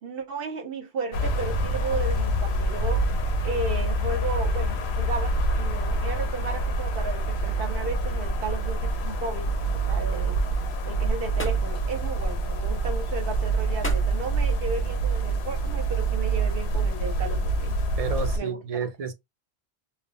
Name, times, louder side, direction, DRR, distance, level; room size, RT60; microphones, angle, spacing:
voice 1, 0.0-3.1 3.4-10.4 10.8-17.8 18.4-18.6, right 4 dB, 65° right, 0.8 m, -34 dB
sound 1, 1.1-18.4, right 2 dB, 85° left, 0.9 m, -26 dB
sound 2, 10.0-17.8, left 1 dB, 15° left, 0.6 m, -44 dB
voice 2, 18.0-19.1, right 5 dB, 50° right, 0.5 m, -31 dB
2.2 x 2.0 x 3.6 m
omnidirectional pair, 1.1 m